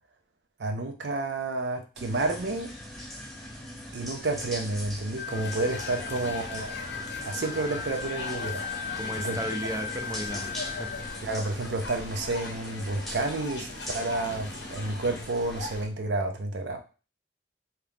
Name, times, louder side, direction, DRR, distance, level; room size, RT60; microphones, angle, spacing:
voice 1, 0.6-2.7 3.9-6.8 7.3-8.6 9.1-9.4 11.2-13.7 13.9-16.8, right 2 dB, 75° right, 4 dB, 0.5 m, -30 dB
sound 1, 2.0-15.7, equal, ahead, 0.8 m, -42 dB
sound 2, 5.2-15.9, left 3 dB, 75° left, 0.6 m, -40 dB
sound 3, 5.2-11.2, left 8 dB, 40° left, 0.7 m, -38 dB
voice 2, 6.2-6.5 9.0-11.0, right 1 dB, 20° right, 2 dB, 0.4 m, -35 dB
2.9 x 2.3 x 3.4 m, 0.34 s
head